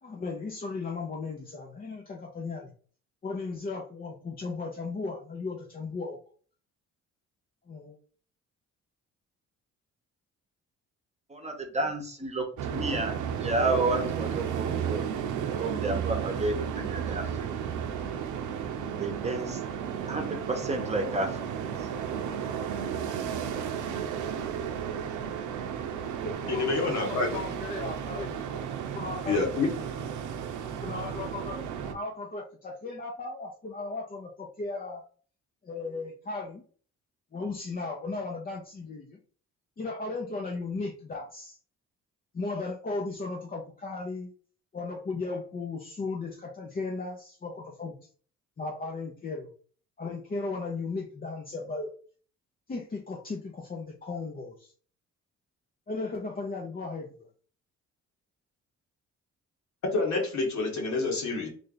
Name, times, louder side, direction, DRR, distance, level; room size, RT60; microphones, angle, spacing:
voice 1, 0.0-2.7 3.2-6.2 7.7-8.0 26.2-28.6 28.9-29.7 30.8-35.0 35.6-36.6 37.3-39.2 39.8-41.6 42.3-44.3 44.7-48.0 48.6-49.5 50.0-51.9 52.7-54.7 55.9-57.1, left 3 dB, 30° left, 0 dB, 0.7 m, -36 dB
voice 2, 11.3-15.0 15.5-17.5 19.0-19.6 20.1-21.4 21.8-21.9, right 2 dB, 20° right, 3 dB, 1.0 m, -31 dB
sound 1, 12.6-31.9, right 8 dB, 80° right, 0.7 m, -33 dB
voice 3, 26.5-27.4 29.3-29.7 59.8-61.5, left 3 dB, 65° left, 1 dB, 1.5 m, -28 dB
3.4 x 2.5 x 3.9 m, 0.43 s
cardioid pair, 90°, 30 cm